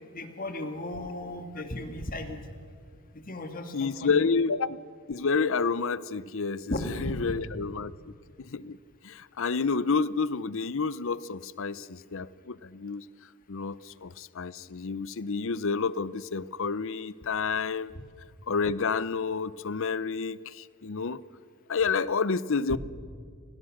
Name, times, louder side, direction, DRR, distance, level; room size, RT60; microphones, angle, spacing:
voice 1, 0.1-2.4 3.1-4.3 6.7-7.2 17.9-18.0 22.7-22.8, left 1 dB, 40° left, 7 dB, 2.1 m, -35 dB
voice 2, 3.7-4.8 5.1-8.1 8.4-8.8 9.0-13.0 13.5-17.9 18.5-21.2 21.7-22.8, left 5 dB, 60° left, 18 dB, 0.7 m, -29 dB
29.0 x 23.0 x 6.6 m, 2.3 s
head